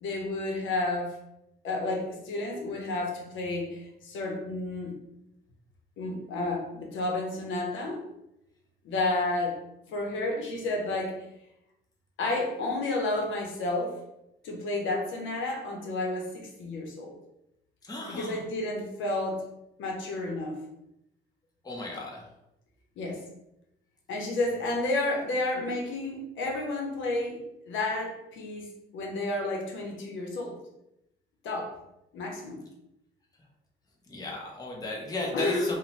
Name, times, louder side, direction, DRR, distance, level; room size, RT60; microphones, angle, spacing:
voice 1, 0.0-1.2 1.6-4.9 6.0-8.0 8.8-9.6 9.9-11.2 12.2-14.0 14.4-17.1 18.1-19.4 19.8-20.6 23.0-23.2 24.1-28.7 28.9-30.6 31.4-31.8 32.1-32.6 35.3-35.7, left 2 dB, 75° left, 0 dB, 0.7 m, -31 dB
voice 2, 17.8-18.4 21.6-22.3 34.1-35.8, left 2 dB, 20° left, -2 dB, 0.7 m, -35 dB
2.6 x 2.1 x 3.1 m, 0.86 s
cardioid pair, 90°, 20 cm